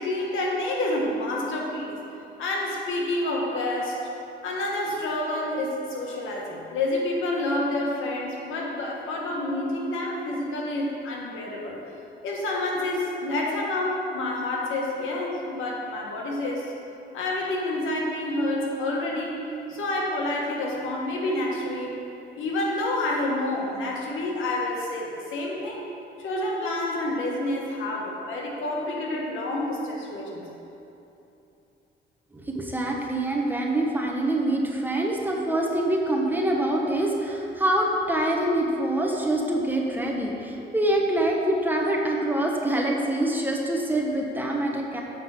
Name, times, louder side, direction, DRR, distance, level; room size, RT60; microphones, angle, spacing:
voice 1, 0.0-2.0 2.4-4.0 4.4-11.8 12.2-16.7 17.1-22.0 22.3-25.8 26.2-30.4, left 1 dB, 85° left, -2 dB, 1.5 m, -28 dB
voice 2, 32.3-45.0, right 1 dB, 10° right, -1 dB, 1.2 m, -25 dB
7.4 x 5.4 x 6.1 m, 2.9 s
cardioid pair, 90°, 20 cm